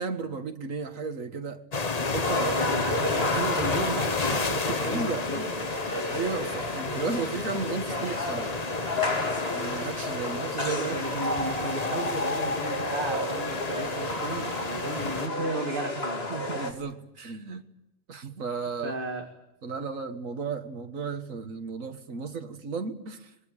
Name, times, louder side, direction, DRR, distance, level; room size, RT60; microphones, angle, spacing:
voice 1, 0.0-1.7 2.0-2.9 4.3-4.4 4.7-5.5 6.1-8.5 9.5-11.1 16.3-17.6 18.1-19.0 19.6-23.3, right 4 dB, 85° right, 7 dB, 2.0 m, -34 dB
sound 1, 1.7-15.3, left 4 dB, 30° left, 1.2 m, -32 dB
sound 2, 2.2-16.7, left 1 dB, 50° left, 3.3 m, -31 dB
voice 2, 2.2-5.7 10.3-16.4 18.8-19.3, right 2 dB, 40° right, 4 dB, 2.5 m, -35 dB
25.5 x 21.0 x 8.9 m, 0.91 s
omnidirectional pair, 1.4 m